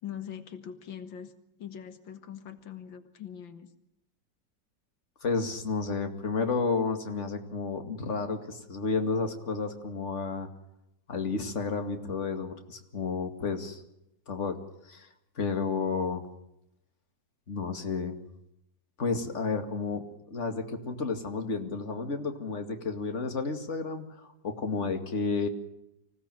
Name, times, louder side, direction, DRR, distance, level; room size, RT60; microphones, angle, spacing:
voice 1, 0.0-1.3 1.6-3.7, left 9 dB, 90° left, 10 dB, 2.2 m, -42 dB
voice 2, 5.2-10.5 11.1-13.8 14.3-14.6 14.9-15.1 15.4-16.2 17.5-18.2 19.0-20.0 20.3-25.5, left 4 dB, 40° left, 6 dB, 2.5 m, -31 dB
25.5 x 17.0 x 9.1 m, 0.83 s
omnidirectional pair, 2.0 m